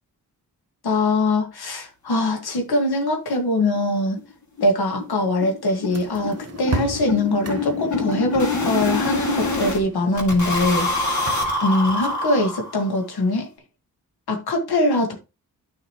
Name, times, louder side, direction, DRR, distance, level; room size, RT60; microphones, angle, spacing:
voice 1, 0.8-4.2 4.6-11.3 11.6-13.5 14.3-15.1, left 2 dB, 85° left, 2.0 m, -22 dB
sound 1, 2.9-3.0 3.3-3.4 3.8-3.9 4.2-4.3 4.6-9.8 10.2-13.0, left 2 dB, 50° left, 2.3 m, -26 dB
sound 2, 5.9-12.2, right 4 dB, 40° right, 1.3 m, -36 dB
9.8 x 5.6 x 3.1 m
cardioid pair, 55°, 37 cm